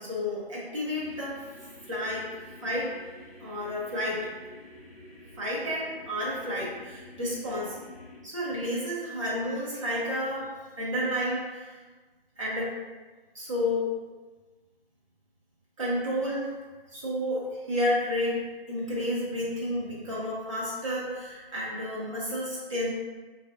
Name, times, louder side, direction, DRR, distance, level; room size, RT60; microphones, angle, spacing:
voice 1, 0.0-1.4 1.8-2.2 2.6-2.9 3.4-4.3 5.4-7.8 8.2-10.5 10.8-11.8 12.4-12.7 13.3-13.9 15.8-16.5 16.9-18.4 18.7-22.9, left 1 dB, 35° right, -7 dB, 1.1 m, -31 dB
sound 1, 0.9-8.2, left 1 dB, 40° left, 0.9 m, -49 dB
5.9 x 2.7 x 2.3 m, 1.3 s
figure-of-eight pair, 160°, 30 cm